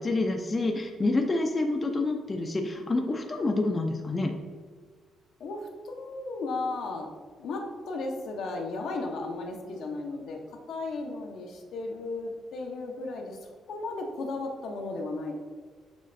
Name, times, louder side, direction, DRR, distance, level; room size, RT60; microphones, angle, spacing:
voice 1, 0.0-4.3, left 2 dB, 30° left, 3 dB, 0.4 m, -28 dB
voice 2, 5.4-7.1 7.4-10.4 10.7-13.4 13.7-15.3, left 3 dB, 75° left, 1 dB, 0.8 m, -35 dB
6.2 x 3.1 x 2.6 m, 1.5 s
cardioid pair, 90°, 0 cm